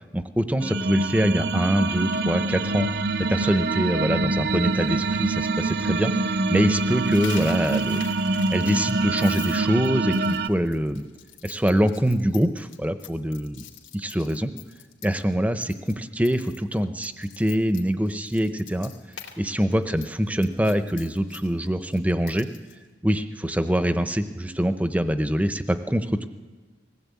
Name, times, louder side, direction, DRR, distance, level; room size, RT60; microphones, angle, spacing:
voice 1, 0.1-8.0 8.5-11.0 11.4-13.6 13.9-14.5 15.0-18.9 19.4-22.5 23.0-26.3, equal, 10° right, 10 dB, 0.7 m, -24 dB
sound 1, 0.6-10.5, right 3 dB, 60° right, 0.6 m, -25 dB
Coin (dropping), 7.0-15.3 15.6-15.9 16.2-19.3 19.6-22.7, left 9 dB, 90° left, 2.6 m, -43 dB
20.5 x 16.5 x 8.4 m, 1.4 s
head